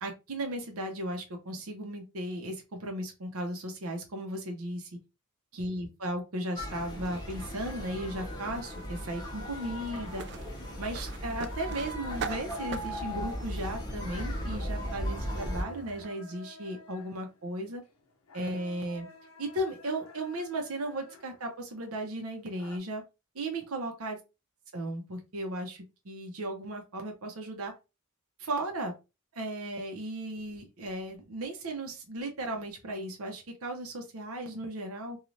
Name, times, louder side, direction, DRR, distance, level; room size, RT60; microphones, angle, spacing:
voice 1, 0.0-4.9 5.5-10.2 10.8-17.8 18.3-19.1 19.4-23.0 23.3-24.2 24.7-27.7 28.4-28.9 29.3-35.2, right 1 dB, 75° right, 3 dB, 0.7 m, -36 dB
sound 1, 6.6-15.6, equal, 20° left, 0.8 m, -37 dB
sound 2, 10.1-16.1, right 6 dB, 50° right, 0.3 m, -44 dB
sound 3, 11.6-22.8, equal, 70° left, 0.6 m, -52 dB
3.1 x 2.4 x 2.5 m, 0.27 s
head